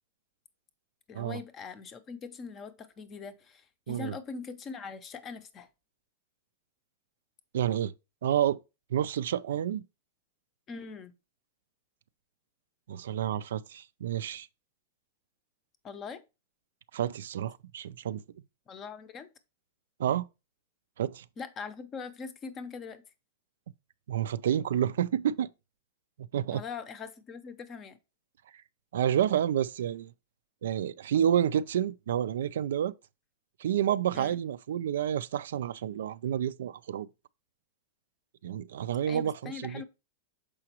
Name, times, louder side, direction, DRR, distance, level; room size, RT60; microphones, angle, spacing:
voice 1, 1.1-5.7 10.7-11.1 15.8-16.2 18.7-19.3 21.4-23.0 26.5-28.0 34.1-34.4 39.1-39.8, left 5 dB, 20° left, 0.6 m, -42 dB
voice 2, 7.5-7.9 8.2-8.6 8.9-9.8 12.9-14.5 16.9-18.2 20.0-20.3 21.0-21.2 24.1-25.5 26.3-26.6 28.9-30.1 30.6-32.9 33.6-37.1 38.4-39.8, right 10 dB, 85° right, 0.4 m, -29 dB
6.8 x 4.9 x 2.9 m
supercardioid pair, 170°, 0 cm